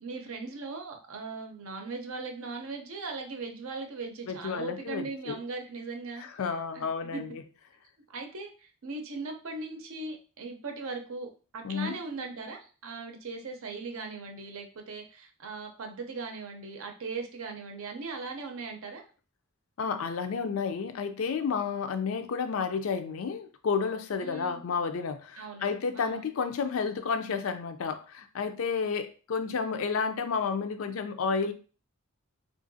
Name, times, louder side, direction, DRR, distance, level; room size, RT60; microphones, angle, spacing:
voice 1, 0.0-6.3 6.7-6.9 7.1-7.2 8.1-19.0 24.2-24.6 25.4-25.7 25.9-26.3, right 3 dB, 65° right, 4 dB, 0.6 m, -39 dB
voice 2, 4.3-5.4 6.2-7.4 11.6-12.0 19.8-31.5, left 5 dB, 65° left, 9 dB, 0.4 m, -31 dB
3.6 x 2.5 x 2.6 m, 0.37 s
head